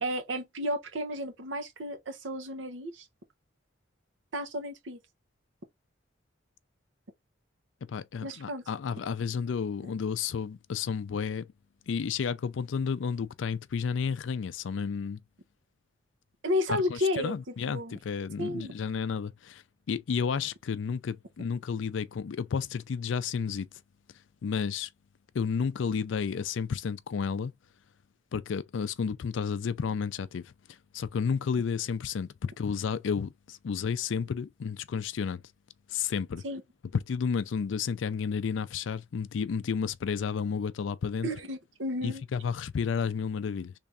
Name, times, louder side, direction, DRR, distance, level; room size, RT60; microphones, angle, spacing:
voice 1, 0.0-3.1 4.3-5.0 8.2-8.6 16.4-17.3 17.7-17.9 18.4-18.7 36.4-36.6 41.2-42.2, left 1 dB, 75° right, 0.9 m, -32 dB
voice 2, 7.9-11.5 11.9-15.2 16.7-23.7 24.4-24.9 25.3-27.5 28.3-35.4 35.9-36.4 36.9-41.3 42.0-43.7, left 6 dB, 75° left, 0.4 m, -32 dB
3.3 x 2.6 x 3.4 m
head